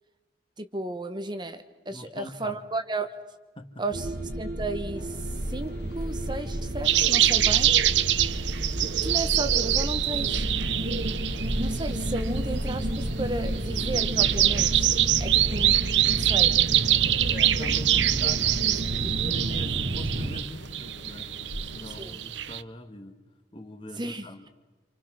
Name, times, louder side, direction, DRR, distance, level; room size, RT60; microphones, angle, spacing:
voice 1, 0.6-3.1 3.8-4.1 4.4-5.2 5.5-7.7 9.0-10.4 11.6-15.8 16.0-16.6 18.6-18.7 19.0-19.1 22.0-22.2 24.0-24.5, right 2 dB, 25° right, 8 dB, 1.1 m, -34 dB
voice 2, 1.9-2.5 3.6-3.8 7.4-7.6 8.0-8.2 17.3-18.5 19.0-23.2 23.5-24.5, left 1 dB, 30° left, 7 dB, 1.7 m, -42 dB
sound 1, 3.9-20.4, right 1 dB, 50° right, 1.5 m, -31 dB
sound 2, 4.9-22.0, left 1 dB, 65° left, 1.7 m, -46 dB
sound 3, 6.9-22.6, right 13 dB, 80° right, 0.8 m, -25 dB
28.0 x 27.5 x 6.3 m, 1.2 s
head